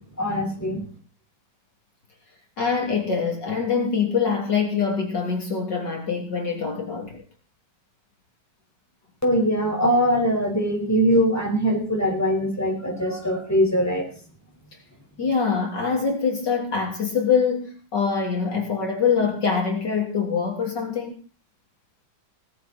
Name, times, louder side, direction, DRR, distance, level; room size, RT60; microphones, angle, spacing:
voice 1, 0.2-0.8 9.2-14.1, equal, 10° left, 0 dB, 5.9 m, -22 dB
voice 2, 2.6-7.2 15.2-21.1, left 6 dB, 60° left, 1 dB, 3.9 m, -24 dB
18.5 x 16.0 x 4.5 m, 0.38 s
omnidirectional pair, 2.1 m